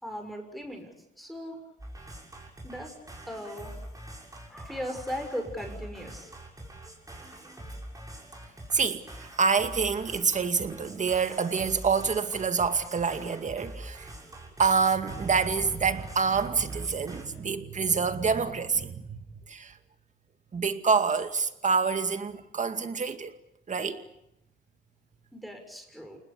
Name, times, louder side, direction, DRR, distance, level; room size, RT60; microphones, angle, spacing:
voice 1, 0.0-1.6 2.6-2.9 3.3-3.7 4.5-6.3 25.3-26.2, equal, ahead, 6.2 m, -38 dB
sound 1, 1.8-17.2, right 1 dB, 15° right, 7.5 m, -45 dB
voice 2, 8.7-14.1 14.6-19.2 19.5-19.8 20.5-23.3 23.7-24.0, right 5 dB, 40° right, 2.3 m, -27 dB
29.0 x 20.0 x 8.5 m
cardioid pair, 90°, 20 cm